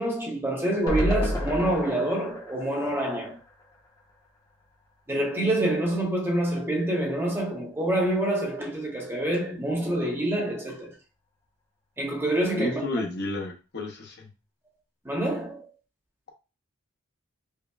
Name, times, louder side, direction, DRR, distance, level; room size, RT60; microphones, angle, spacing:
voice 1, 0.0-3.4 5.1-10.9 12.0-12.8 15.0-15.7, right 1 dB, 10° right, 0.8 m, -26 dB
sound 1, 0.9-4.1 4.5-4.6 4.8-4.9, equal, 15° left, 0.7 m, -31 dB
voice 2, 12.6-14.3, left 2 dB, 50° left, 0.7 m, -31 dB
5.2 x 2.2 x 2.3 m
head